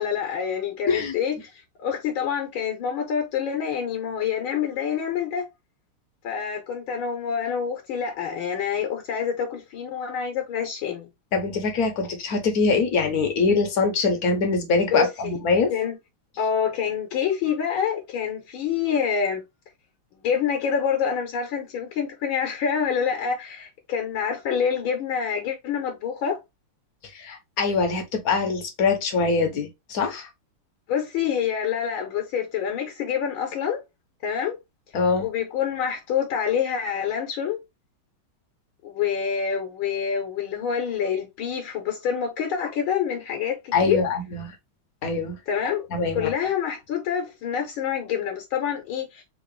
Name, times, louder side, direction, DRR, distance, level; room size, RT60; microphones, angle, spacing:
voice 1, 0.0-5.5 6.2-11.1 14.9-15.3 15.7-15.9 16.4-19.4 20.2-26.4 30.9-33.8 34.2-34.6 35.2-37.6 38.8-44.0 45.5-45.9 46.1-49.2, left 7 dB, 75° left, 1.6 m, -27 dB
voice 2, 11.3-15.7 27.1-30.3 34.9-35.3 43.7-44.5 45.0-45.4 45.9-46.3, left 4 dB, 55° left, 1.2 m, -23 dB
3.8 x 2.9 x 3.1 m
omnidirectional pair, 2.4 m